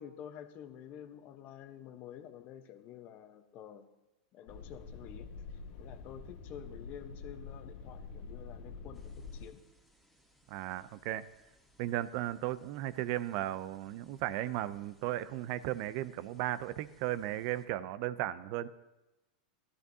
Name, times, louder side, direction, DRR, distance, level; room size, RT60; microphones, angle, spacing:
voice 1, 0.0-3.9 4.3-5.3 5.8-9.6, left 9 dB, 45° left, 8 dB, 1.0 m, -49 dB
sound 1, 4.5-9.4, left 4 dB, 65° left, 1.5 m, -46 dB
sound 2, 8.9-17.7, equal, ahead, 2.4 m, -68 dB
voice 2, 10.5-11.3 11.8-18.7, right 14 dB, 55° right, 15 dB, 0.5 m, -35 dB
13.5 x 12.5 x 2.8 m, 1.0 s
hypercardioid pair, 115°, 4 cm